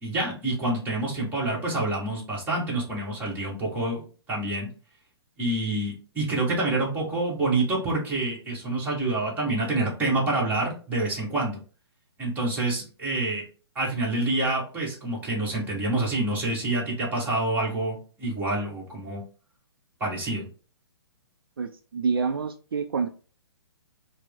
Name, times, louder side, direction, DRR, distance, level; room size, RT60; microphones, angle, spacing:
voice 1, 0.0-4.0 4.3-4.7 5.4-11.6 12.2-13.4 13.7-19.2 20.0-20.4, right 2 dB, 10° right, -4 dB, 1.2 m, -27 dB
voice 2, 21.6-23.1, right 5 dB, 60° right, 7 dB, 0.4 m, -27 dB
4.7 x 2.0 x 3.5 m, 0.38 s
figure-of-eight pair, 125°, 14 cm